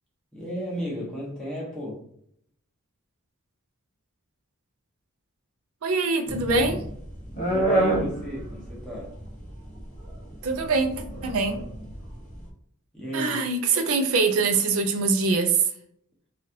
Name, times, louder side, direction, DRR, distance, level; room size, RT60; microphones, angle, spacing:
voice 1, 0.3-2.1 7.5-9.2 12.9-13.4, equal, 5° left, -5 dB, 1.0 m, -34 dB
voice 2, 5.8-6.8 10.4-11.6 13.1-15.6, right 4 dB, 70° right, 5 dB, 0.4 m, -23 dB
sound 1, 6.3-12.4, right 1 dB, 35° left, 0.9 m, -28 dB
3.1 x 2.4 x 2.8 m, 0.67 s
head